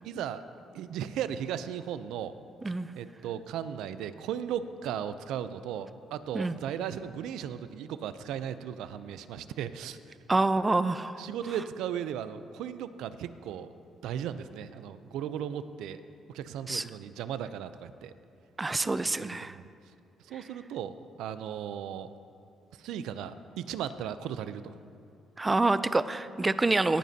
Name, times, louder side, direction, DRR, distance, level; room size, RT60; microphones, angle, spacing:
voice 1, 0.0-0.4 0.7-2.3 2.9-10.2 11.2-13.7 14.0-16.0 16.3-18.1 18.7-19.6 20.2-22.1 22.8-24.7, right 9 dB, 90° right, 12 dB, 0.4 m, -36 dB
voice 2, 10.3-11.1 16.7-16.8 18.6-19.5 25.4-27.0, right 2 dB, 20° right, 14 dB, 0.4 m, -27 dB
17.5 x 9.3 x 2.8 m, 2.5 s
cardioid pair, 90°, 0 cm